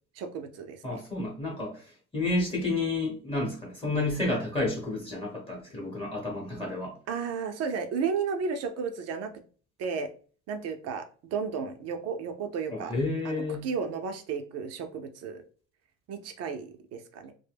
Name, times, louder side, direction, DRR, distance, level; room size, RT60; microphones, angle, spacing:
voice 1, 0.2-1.0 7.1-9.3 9.8-10.1 10.5-11.0 11.3-12.9 13.2-15.4 16.1-17.3, right 5 dB, 45° right, 7 dB, 0.6 m, -33 dB
voice 2, 0.8-6.9 12.7-13.7, left 2 dB, 15° left, -1 dB, 1.0 m, -31 dB
2.2 x 2.1 x 3.3 m, 0.41 s
supercardioid pair, 105°, 36 cm